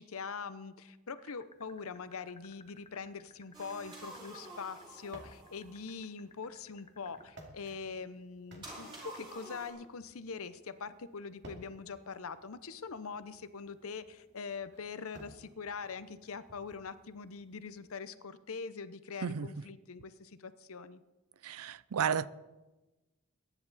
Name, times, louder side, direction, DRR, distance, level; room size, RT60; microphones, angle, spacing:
voice 1, 0.0-21.0, left 5 dB, 70° left, 0.7 m, -43 dB
sound 1, 1.2-7.4, left 5 dB, 25° left, 0.7 m, -56 dB
sound 2, 1.4-18.0, right 1 dB, 50° right, 2.5 m, -59 dB
sound 3, 3.5-6.0 8.6-9.7, right 1 dB, 20° right, 5.1 m, -49 dB
voice 2, 21.4-22.3, right 7 dB, 75° right, 0.5 m, -32 dB
22.0 x 10.0 x 4.1 m
head